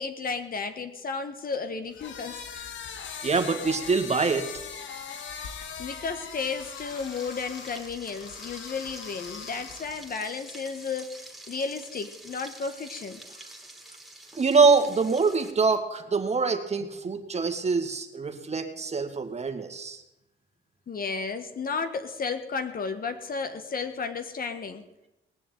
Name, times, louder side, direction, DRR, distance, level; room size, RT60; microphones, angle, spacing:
voice 1, 0.0-2.7 5.8-13.2 20.9-24.8, left 5 dB, 45° left, 9 dB, 1.7 m, -33 dB
sound 1, 1.9-10.1, left 6 dB, 70° left, 1.7 m, -40 dB
voice 2, 3.2-4.4 14.4-20.0, right 4 dB, 35° right, 7 dB, 2.0 m, -24 dB
Frying (food), 6.4-15.5, right 1 dB, ahead, 3.0 m, -47 dB
19.5 x 6.8 x 9.2 m, 0.92 s
cardioid pair, 90°, 20 cm